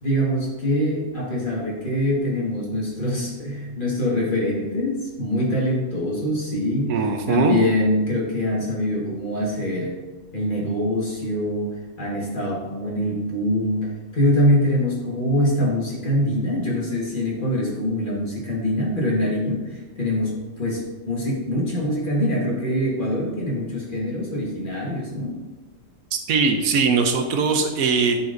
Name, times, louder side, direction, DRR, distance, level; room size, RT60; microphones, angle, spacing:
voice 1, 0.0-7.0 7.3-10.0 10.3-25.4, left 1 dB, 35° left, -4 dB, 1.5 m, -24 dB
voice 2, 6.9-7.6 26.1-28.2, right 5 dB, 80° right, 5 dB, 1.1 m, -21 dB
10.5 x 4.2 x 2.5 m, 1.2 s
omnidirectional pair, 1.5 m